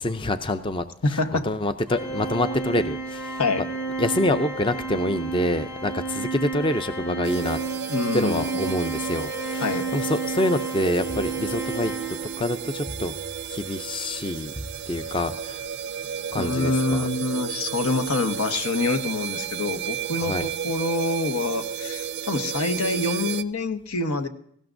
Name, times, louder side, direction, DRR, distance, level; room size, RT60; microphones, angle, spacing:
voice 1, 0.0-3.4 4.0-7.6 8.1-13.1 13.5-14.5 14.9-15.6 16.3-17.1 20.2-20.4, left 1 dB, 20° left, 10 dB, 0.4 m, -26 dB
voice 2, 1.0-1.5 3.4-3.6 7.9-8.6 9.6-9.8 16.3-24.3, left 2 dB, 90° left, 6 dB, 1.1 m, -26 dB
Organ, 1.9-12.6, right 4 dB, 65° left, 4.4 m, -32 dB
sound 1, 7.2-23.4, right 8 dB, 50° right, 0.5 m, -33 dB
sound 2, 11.1-12.2 12.9-13.9 14.6-15.7, equal, 45° left, 3.5 m, -41 dB
19.0 x 16.0 x 2.6 m, 0.68 s
head